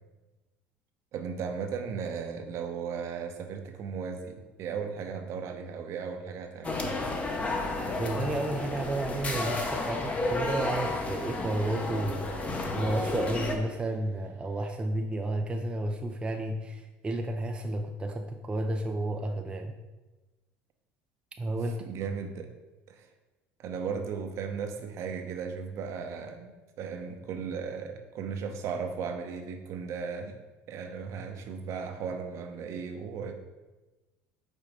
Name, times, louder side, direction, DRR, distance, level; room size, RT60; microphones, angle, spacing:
voice 1, 1.1-6.9 21.8-22.5 22.9-23.1 23.6-30.4 30.7-33.3, right 6 dB, 55° right, 6 dB, 0.8 m, -36 dB
sound 1, 6.6-13.6, left 2 dB, 25° left, 0.8 m, -32 dB
voice 2, 7.9-19.7 21.4-21.8, right 2 dB, 15° right, 4 dB, 0.4 m, -32 dB
5.4 x 3.7 x 4.9 m, 1.2 s
supercardioid pair, 115°, 6 cm